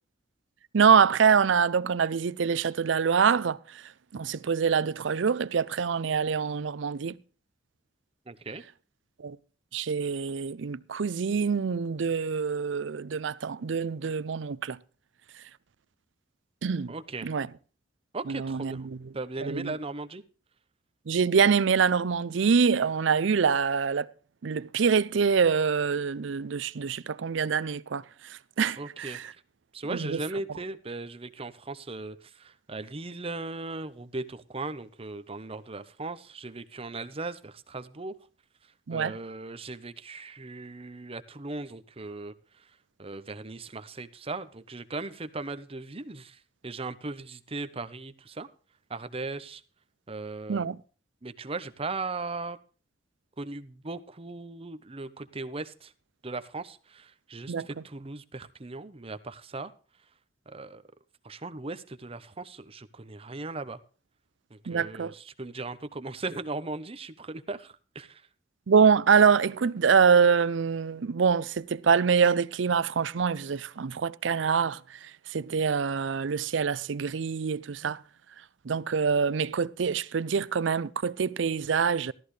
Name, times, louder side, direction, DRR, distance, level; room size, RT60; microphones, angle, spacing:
voice 1, 0.7-3.6 4.1-7.2 9.2-9.4 9.7-14.8 16.6-16.9 17.2-17.5 18.3-19.0 19.4-19.7 21.1-24.1 24.4-28.0 28.6-29.3 29.9-30.2 38.9-39.1 50.5-50.8 57.5-57.7 64.7-65.1 68.7-78.0 78.7-82.1, right 6 dB, 75° right, 0.5 m, -25 dB
voice 2, 8.3-8.6 16.9-17.3 18.1-18.9 19.1-20.2 28.8-29.2 29.7-38.2 38.9-42.3 43.0-48.5 48.9-49.6 50.1-50.7 51.2-52.6 53.4-55.9 56.2-59.7 60.5-60.8 61.2-63.8 64.5-68.2, right 3 dB, 30° right, 0.8 m, -38 dB
14.0 x 13.5 x 3.2 m
head